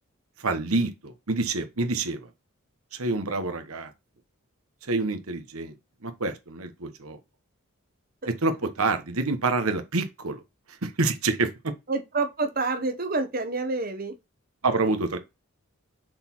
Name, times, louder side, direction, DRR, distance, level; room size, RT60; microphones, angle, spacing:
voice 1, 0.4-2.3 2.9-3.9 4.8-5.7 6.0-7.2 8.2-10.4 10.7-11.7 14.6-15.2, right 3 dB, 80° right, 1.2 m, -27 dB
voice 2, 11.9-14.1, right 3 dB, 40° right, 1.1 m, -28 dB
6.6 x 4.1 x 4.5 m
head